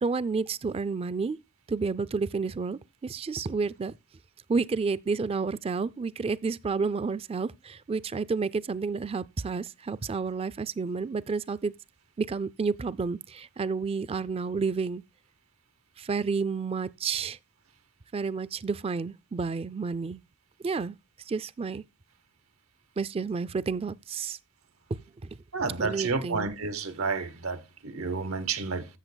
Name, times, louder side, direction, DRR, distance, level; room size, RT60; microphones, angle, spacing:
voice 1, 0.0-1.4 1.7-3.9 4.5-11.7 12.2-15.0 16.1-17.4 18.1-20.2 20.6-21.0 21.3-21.8 23.0-24.4 24.9-25.0 25.8-26.5, right 4 dB, 30° right, 0.3 m, -30 dB
voice 2, 25.5-28.9, right 4 dB, 90° right, 1.2 m, -30 dB
14.0 x 7.0 x 2.2 m
head